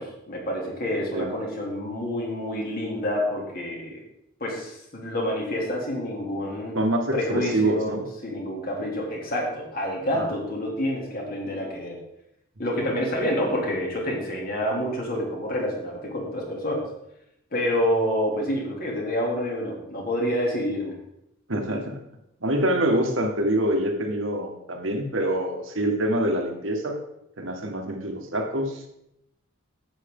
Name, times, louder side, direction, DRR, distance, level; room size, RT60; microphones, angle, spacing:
voice 1, 0.0-4.0 4.4-6.8 7.1-12.0 12.6-16.8 17.5-21.0, equal, 45° left, -2 dB, 2.9 m, -28 dB
voice 2, 6.7-8.0 10.2-10.3 21.5-22.0 22.4-27.0 27.4-28.9, right 1 dB, 75° right, 3 dB, 1.7 m, -25 dB
11.0 x 8.8 x 3.8 m, 0.80 s
head